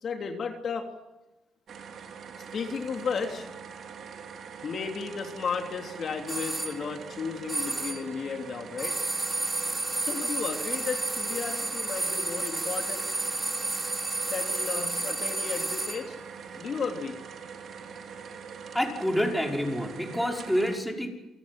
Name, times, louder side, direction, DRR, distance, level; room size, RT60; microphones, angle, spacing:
voice 1, 0.0-0.9 2.5-3.5 4.6-8.9 10.0-13.1 14.3-16.1 16.6-17.1, left 5 dB, 50° left, 3 dB, 3.3 m, -34 dB
sound 1, 1.7-20.8, right 6 dB, 55° right, 4.3 m, -43 dB
sound 2, 6.3-6.8 7.5-8.1 8.8-16.1, right 2 dB, 20° right, 3.5 m, -31 dB
voice 2, 18.7-21.3, equal, 5° left, 1 dB, 5.6 m, -28 dB
30.0 x 18.0 x 7.7 m, 1.0 s
cardioid pair, 100°, 0 cm